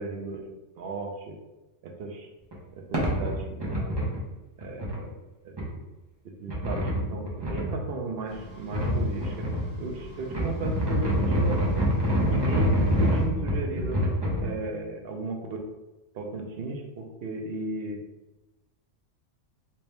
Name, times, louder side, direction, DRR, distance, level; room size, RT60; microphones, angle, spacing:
voice 1, 0.0-1.4 1.8-2.3 2.8-4.0 4.6-5.1 5.4-5.5 6.4-9.5 9.8-11.6 12.3-14.0 14.4-15.4 16.1-18.0, right 3 dB, 60° right, 1 dB, 0.7 m, -35 dB
sound 1, 2.5-2.6 2.9-4.2 4.6-5.0 5.6-5.7 6.5-7.8 8.7-9.6 10.2-14.5, equal, 25° right, 0.7 m, -25 dB
sound 2, 8.3-13.3, equal, 50° left, 1.0 m, -47 dB
3.4 x 2.9 x 3.2 m, 1.0 s
omnidirectional pair, 1.3 m